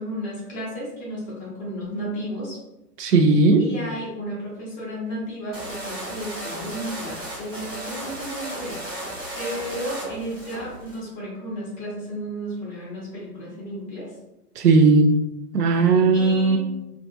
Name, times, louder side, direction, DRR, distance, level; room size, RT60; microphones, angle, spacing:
voice 1, 0.0-2.6 3.6-9.1 9.4-14.1 15.6-16.6, equal, 15° left, -6 dB, 0.8 m, -33 dB
voice 2, 3.0-3.6 14.6-15.2 15.5-16.6, right 3 dB, 75° right, 5 dB, 0.5 m, -17 dB
sound 1, 5.5-11.0, right 1 dB, 15° right, 0.4 m, -35 dB
2.6 x 2.5 x 2.5 m, 0.94 s
figure-of-eight pair, 115°, 47 cm